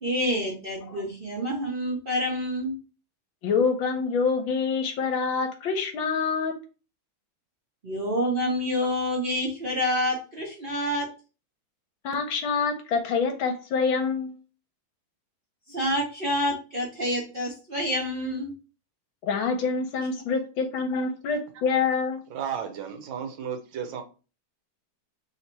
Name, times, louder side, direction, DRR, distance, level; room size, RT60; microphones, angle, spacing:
voice 1, 0.0-2.8 7.8-11.1 15.7-18.5 20.2-20.3, equal, 40° right, 0.8 m, -28 dB
voice 2, 3.4-6.5 12.0-14.4 19.2-22.2, left 5 dB, 75° left, 1.5 m, -26 dB
voice 3, 22.3-24.0, right 8 dB, 70° right, 1.4 m, -33 dB
3.5 x 2.8 x 4.3 m
omnidirectional pair, 2.3 m